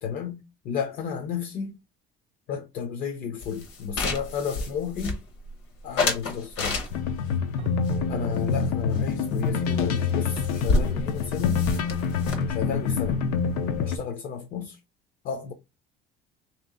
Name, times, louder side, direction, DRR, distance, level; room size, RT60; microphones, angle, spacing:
voice 1, 0.0-1.8 2.5-5.2 5.8-6.8 8.1-11.6 12.5-13.2 13.8-14.8 15.2-15.5, left 7 dB, 45° left, 0.5 m, -32 dB
sound 1, 3.4-5.5 6.0-7.3 7.8-9.1 9.4-9.5 9.8-9.9 10.1-14.0, left 3 dB, 65° left, 1.2 m, -30 dB
sound 2, 6.9-14.0, left 6 dB, 85° left, 0.6 m, -26 dB
Keyboard (musical), 7.6-10.7, right 16 dB, 35° right, 0.3 m, -41 dB
3.4 x 2.8 x 3.6 m
cardioid pair, 175°, 21 cm